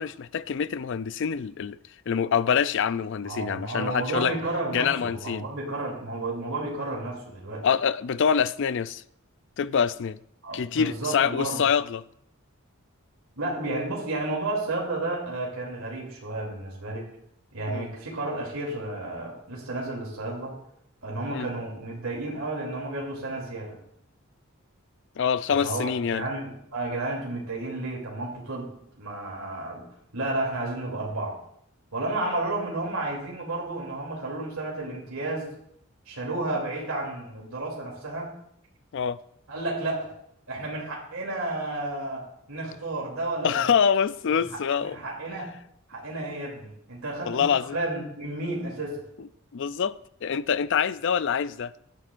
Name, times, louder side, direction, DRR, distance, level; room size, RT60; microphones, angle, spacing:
voice 1, 0.0-1.8 2.1-4.4 4.7-5.4 7.6-9.0 9.6-10.2 10.5-12.0 17.7-17.9 21.3-21.5 25.2-26.3 38.9-39.2 43.4-45.0 47.3-47.8 49.5-49.9 50.2-51.7, left 7 dB, 60° left, 0.4 m, -25 dB
voice 2, 3.2-7.7 10.4-11.6 13.4-17.0 17.5-20.5 21.0-23.8 25.5-28.7 29.0-29.9 30.1-31.4 31.9-35.5 36.1-38.3 39.5-40.1 40.5-43.6 44.8-45.6 45.9-49.0, right 2 dB, 80° right, 3.0 m, -32 dB
16.5 x 11.5 x 2.5 m
head